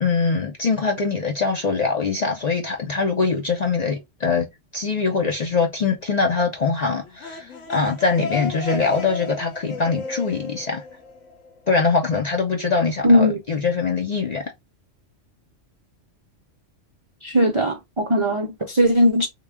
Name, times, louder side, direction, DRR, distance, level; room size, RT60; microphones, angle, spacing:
voice 1, 0.0-4.5 4.7-10.8 11.7-14.4, left 4 dB, 50° left, 0.5 m, -23 dB
sound 1, 7.0-11.7, left 3 dB, 85° left, 1.1 m, -33 dB
voice 2, 13.0-13.4 17.2-19.3, equal, 45° right, 0.4 m, -18 dB
3.4 x 2.2 x 3.4 m
omnidirectional pair, 1.3 m